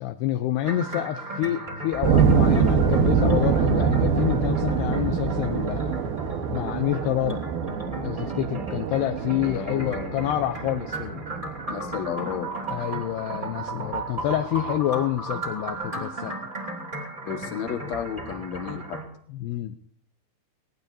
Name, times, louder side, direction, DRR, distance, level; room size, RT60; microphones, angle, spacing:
voice 1, 0.0-6.0 6.5-7.4 8.0-11.2 12.7-16.3 19.3-19.8, left 13 dB, 90° left, 9 dB, 2.3 m, -28 dB
sound 1, 0.6-19.0, right 2 dB, 15° right, 2.0 m, -35 dB
sound 2, 2.0-12.8, right 6 dB, 65° right, 2.5 m, -24 dB
voice 2, 9.4-10.4 11.7-12.5 17.2-19.0, left 8 dB, 70° left, 5 dB, 1.7 m, -33 dB
20.5 x 18.0 x 2.7 m, 0.64 s
omnidirectional pair, 5.5 m